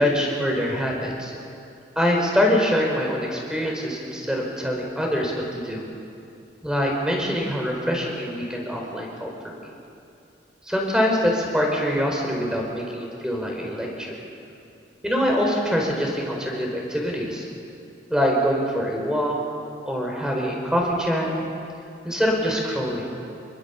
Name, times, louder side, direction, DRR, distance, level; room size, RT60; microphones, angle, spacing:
voice 1, 0.0-1.3 2.0-5.8 6.6-9.6 10.7-14.2 15.0-17.5 18.1-19.4 19.9-21.3 22.0-23.1, equal, 5° right, 0 dB, 4.7 m, -24 dB
27.0 x 23.0 x 7.2 m, 2.6 s
head